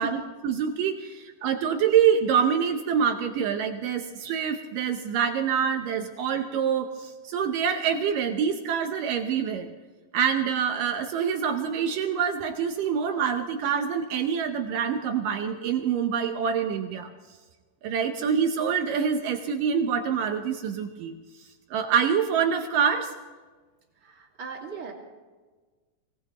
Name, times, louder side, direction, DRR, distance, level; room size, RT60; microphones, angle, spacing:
voice 1, 0.0-9.7 10.1-17.1 17.8-21.2 21.7-23.1, right 7 dB, 80° right, 5 dB, 2.0 m, -26 dB
voice 2, 24.0-24.9, right 6 dB, 40° right, -1 dB, 2.4 m, -38 dB
24.5 x 18.0 x 3.0 m, 1.3 s
omnidirectional pair, 5.0 m